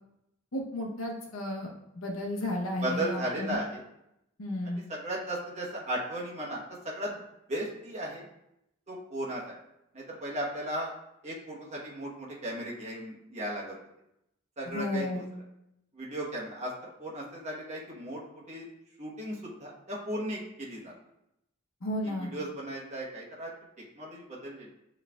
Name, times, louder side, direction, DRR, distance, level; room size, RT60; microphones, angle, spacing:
voice 1, 0.5-3.6 4.4-4.8 14.7-15.3 21.8-22.3, left 1 dB, 75° left, -1 dB, 0.8 m, -33 dB
voice 2, 2.8-3.8 4.6-7.2 7.5-8.2 8.9-9.5 9.9-10.9 11.2-13.8 14.6-15.2 15.9-18.2 18.5-18.7 19.0-20.9 22.0-23.5 24.0-24.7, right 1 dB, 35° right, -4 dB, 1.1 m, -36 dB
7.3 x 3.2 x 2.3 m, 0.83 s
head